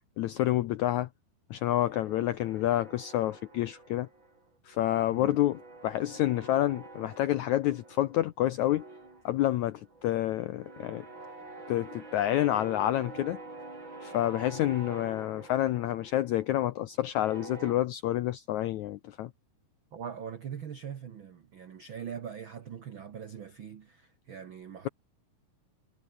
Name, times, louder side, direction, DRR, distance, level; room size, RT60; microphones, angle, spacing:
voice 1, 0.2-1.1 1.5-4.1 4.7-8.8 9.2-11.0 11.7-13.4 14.0-19.3, left 13 dB, 80° left, 1.7 m, -28 dB
sound 1, 1.9-4.4 4.7-8.3 8.6-17.7, right 2 dB, 30° right, 7.4 m, -47 dB
voice 2, 19.9-24.9, right 8 dB, 80° right, 1.1 m, -42 dB
omnidirectional pair, 4.3 m